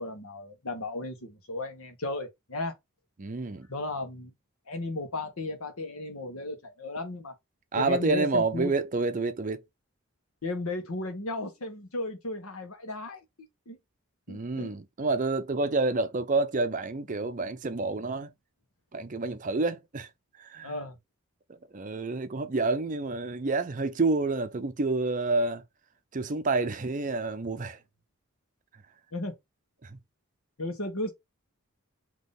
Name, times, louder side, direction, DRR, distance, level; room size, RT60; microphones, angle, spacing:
voice 1, 0.0-2.7 3.7-4.3 4.7-7.3 7.8-8.7 10.4-13.2 13.7-13.8 14.3-14.7 20.6-21.0 29.1-29.3 30.6-31.1, left 2 dB, 80° left, 1.3 m, -34 dB
voice 2, 3.2-3.7 7.7-9.6 14.3-18.3 18.9-20.1 20.4-20.7 21.7-25.6 26.1-27.8 29.8-29.9, right 3 dB, 35° right, 0.5 m, -28 dB
3.8 x 2.9 x 3.8 m
head